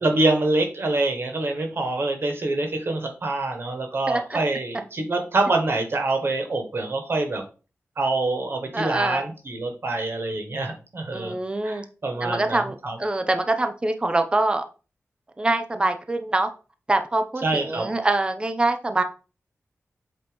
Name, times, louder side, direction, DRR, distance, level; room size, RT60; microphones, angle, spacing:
voice 1, 0.0-7.4 8.0-11.3 11.6-12.6 12.8-13.0 17.4-17.9, right 2 dB, 50° right, 4 dB, 1.6 m, -25 dB
voice 2, 4.1-4.4 8.7-9.2 11.1-11.8 12.2-14.6 15.4-16.5 16.9-19.0, right 2 dB, 20° right, 7 dB, 0.7 m, -24 dB
7.9 x 3.1 x 5.2 m, 0.34 s
wide cardioid pair, 125°, 5 cm